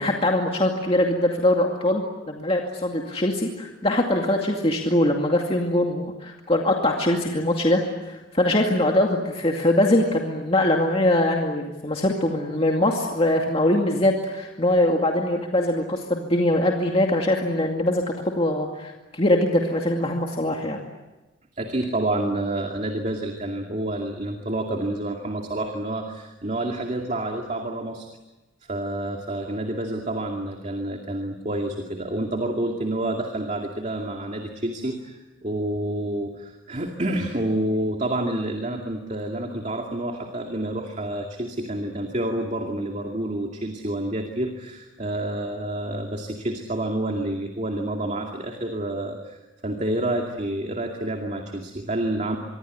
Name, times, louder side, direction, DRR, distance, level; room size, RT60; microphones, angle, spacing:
voice 1, 0.0-7.8 8.1-18.0 18.4-20.8, left 1 dB, 30° left, 1 dB, 2.3 m, -22 dB
voice 2, 21.5-28.1 28.7-52.4, right 1 dB, 35° right, 3 dB, 2.4 m, -28 dB
26.0 x 23.5 x 9.5 m, 1.1 s
head